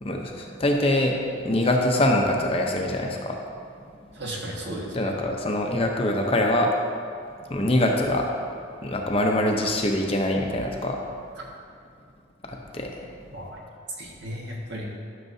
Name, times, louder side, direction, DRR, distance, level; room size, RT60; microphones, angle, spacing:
voice 1, 0.0-3.4 4.9-6.7 7.5-8.3 8.8-11.0 12.4-13.1, left 1 dB, 30° left, 1 dB, 0.6 m, -24 dB
voice 2, 4.2-5.1 13.3-13.6 14.0-14.8, right 1 dB, 60° right, -3 dB, 1.4 m, -35 dB
12.5 x 6.6 x 2.7 m, 2.3 s
head